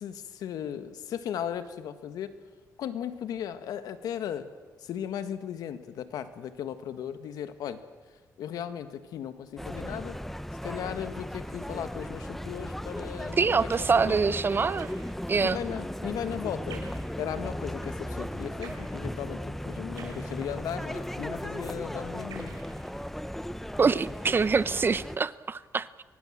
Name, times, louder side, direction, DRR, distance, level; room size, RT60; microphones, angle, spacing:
voice 1, 0.0-2.3 2.8-4.5 4.8-7.8 8.4-10.2 10.6-14.1 15.4-16.9 17.2-22.5, left 9 dB, 85° left, 11 dB, 1.6 m, -36 dB
sound 1, 9.6-25.2, equal, 5° left, 0.9 m, -36 dB
voice 2, 13.4-14.9 15.3-15.6 23.8-26.0, right 5 dB, 35° right, 17 dB, 0.8 m, -25 dB
sound 2, 13.7-14.1 14.8-15.4 16.7-17.2 18.6-18.9 20.0-20.8 22.3-23.4, right 5 dB, 80° right, 5.2 m, -48 dB
24.5 x 19.0 x 7.5 m, 1.4 s
cardioid pair, 85°, 6 cm